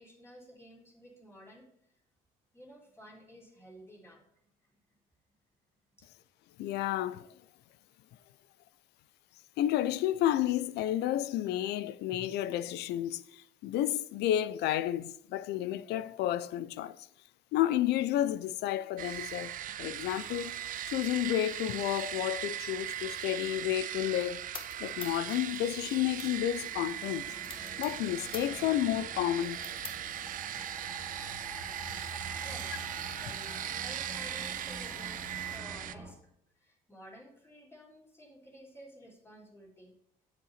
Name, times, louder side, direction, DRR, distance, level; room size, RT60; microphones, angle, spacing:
voice 1, 0.0-1.9 2.5-4.3 6.0-6.1 30.5-30.8 32.0-32.1 32.4-32.8 33.2-39.9, equal, 15° left, 3.6 m, -53 dB
voice 2, 6.6-7.3 9.6-17.1 17.5-20.6 20.9-24.4 24.8-27.3 27.8-29.6, left 12 dB, 80° left, 0.6 m, -31 dB
sound 1, 19.0-35.9, right 11 dB, 55° right, 0.6 m, -39 dB
sound 2, 20.1-35.6, left 4 dB, 30° left, 1.6 m, -52 dB
sound 3, 25.5-36.1, right 1 dB, 5° right, 3.0 m, -48 dB
8.5 x 7.5 x 4.2 m
cardioid pair, 110°, 17 cm